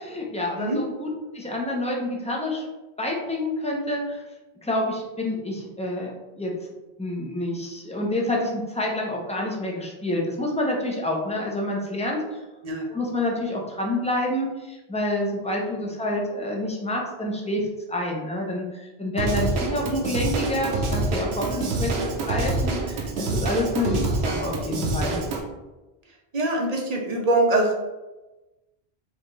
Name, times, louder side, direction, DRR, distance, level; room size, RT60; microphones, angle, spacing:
voice 1, 0.0-2.7 3.0-4.2 4.6-6.5 7.0-12.4 12.9-25.2, left 1 dB, 10° left, -2 dB, 0.5 m, -28 dB
Drum kit / Drum, 19.2-25.4, right 2 dB, 85° right, 0.9 m, -27 dB
voice 2, 26.3-27.7, right 2 dB, 40° right, 0 dB, 0.8 m, -23 dB
4.8 x 2.5 x 3.1 m, 1.1 s
omnidirectional pair, 1.1 m